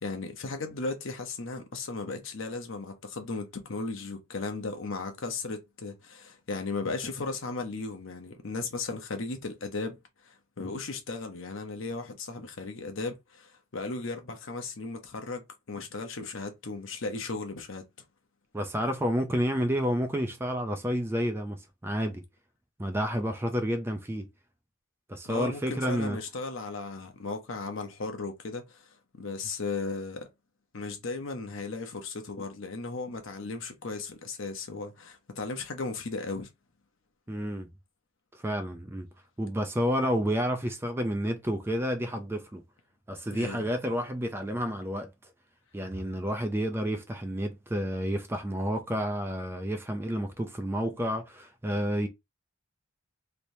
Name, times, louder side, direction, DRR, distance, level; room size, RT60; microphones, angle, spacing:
voice 1, 0.0-10.0 10.2-17.9 25.2-28.9 29.2-30.3 30.7-36.5 43.3-43.7, left 3 dB, 60° left, 0.8 m, -36 dB
voice 2, 18.5-22.2 22.8-24.3 25.1-26.2 37.3-37.7 38.4-39.1 39.4-42.6 43.1-45.1 45.7-52.1, equal, 10° right, 0.4 m, -30 dB
3.3 x 2.9 x 2.7 m
head